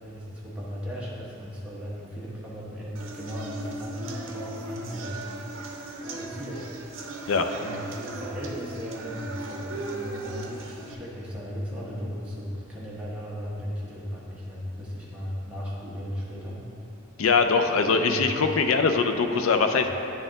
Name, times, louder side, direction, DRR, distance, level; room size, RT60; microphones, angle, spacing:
voice 1, 0.0-5.6 6.0-6.9 7.5-16.7 17.9-18.2 19.8-19.9, equal, 5° right, -7 dB, 1.0 m, -36 dB
sound 1, 3.0-10.9, right 2 dB, 70° right, 0.6 m, -37 dB
voice 2, 17.2-19.9, left 4 dB, 80° left, 6 dB, 0.4 m, -22 dB
9.2 x 4.1 x 3.8 m, 3.0 s
head